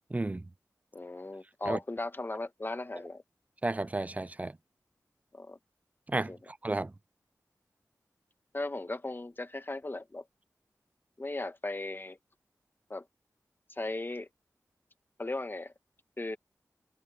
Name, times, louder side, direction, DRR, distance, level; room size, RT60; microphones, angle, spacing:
voice 1, 0.1-0.5 1.7-1.8 3.6-4.5 6.1-6.9, right 2 dB, 20° right, 0.4 m, -32 dB
voice 2, 0.9-3.2 5.3-5.6 6.3-6.4 8.5-10.2 11.2-12.2 12.9-13.0 13.7-14.3 15.2-15.7 16.2-16.4, left 2 dB, 35° left, 1.5 m, -37 dB
wide cardioid pair, 65°, 7 cm